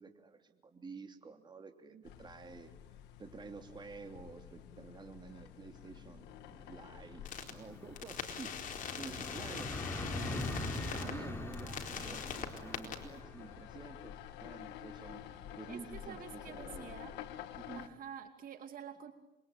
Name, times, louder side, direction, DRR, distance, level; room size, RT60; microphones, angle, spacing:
voice 1, 0.0-2.7 3.2-6.3 6.7-8.5 9.0-10.0 10.7-15.2 15.5-16.9 17.5-17.9, right 4 dB, 25° right, 6 dB, 3.1 m, -50 dB
sound 1, 2.0-17.9, left 11 dB, 90° left, 1.9 m, -50 dB
sound 2, 4.5-4.6 4.9-5.0 5.2-16.7, left 1 dB, 15° left, 4.4 m, -44 dB
sound 3, 7.3-7.5 8.0-11.1 11.5-13.0, left 7 dB, 50° left, 4.3 m, -42 dB
voice 2, 15.7-17.2 17.8-19.1, right 8 dB, 55° right, 7 dB, 2.6 m, -49 dB
27.5 x 23.0 x 9.2 m, 0.96 s
cardioid pair, 110°, 17 cm